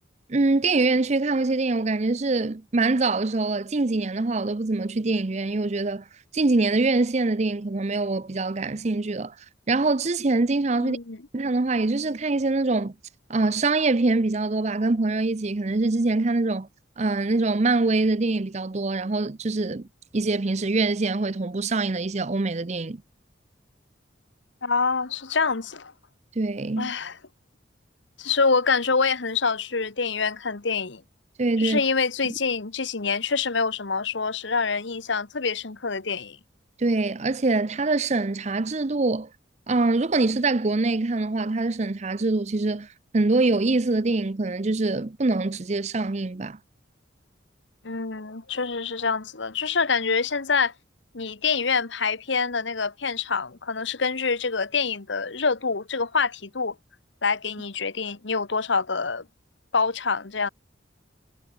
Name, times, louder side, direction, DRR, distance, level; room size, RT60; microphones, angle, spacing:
voice 1, 0.3-6.0 6.3-9.3 9.7-11.0 11.3-12.9 13.3-16.7 17.0-19.9 20.1-23.0 26.4-26.9 31.4-31.8 36.8-39.3 39.7-42.9 43.1-46.6, right 3 dB, 35° right, 0.6 m, -24 dB
voice 2, 10.8-11.2 24.6-25.9 26.8-27.2 28.2-31.0 31.6-36.4 47.8-50.7 51.1-56.7 57.2-59.3 59.7-60.5, left 5 dB, 70° left, 1.3 m, -26 dB
head